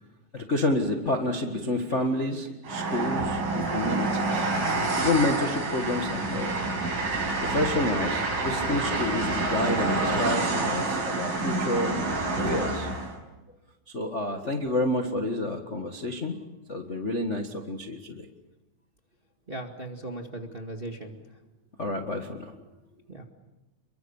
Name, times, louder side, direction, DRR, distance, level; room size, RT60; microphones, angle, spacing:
voice 1, 0.3-4.5 5.0-6.6 7.4-11.9 12.3-12.9 13.9-16.4 16.7-18.2 21.8-22.4, left 2 dB, 30° left, 2 dB, 1.3 m, -29 dB
Train, 2.6-13.1, right 3 dB, 85° right, 7.3 m, -28 dB
voice 2, 19.5-21.2 23.1-23.2, right 1 dB, 20° right, 3 dB, 1.6 m, -38 dB
28.5 x 23.0 x 7.2 m, 1.1 s
omnidirectional pair, 3.8 m